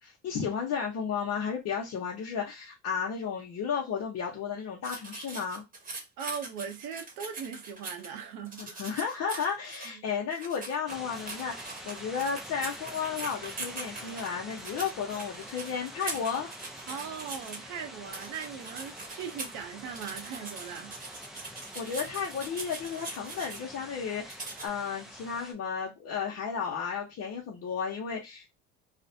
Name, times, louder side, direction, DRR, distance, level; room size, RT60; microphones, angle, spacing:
voice 1, 0.0-5.6 8.6-16.5 21.3-28.6, left 6 dB, 55° left, 0.8 m, -33 dB
sound 1, 4.8-8.1 8.4-9.9 10.3-17.6 18.0-19.6 19.9-23.6 24.3-24.7, right 3 dB, 25° right, 1.0 m, -42 dB
voice 2, 6.2-8.8 9.8-10.0 16.9-20.9, right 7 dB, 70° right, 0.7 m, -39 dB
sound 2, 10.9-25.5, equal, ahead, 0.5 m, -46 dB
2.5 x 2.1 x 2.6 m
supercardioid pair, 85°, 30 cm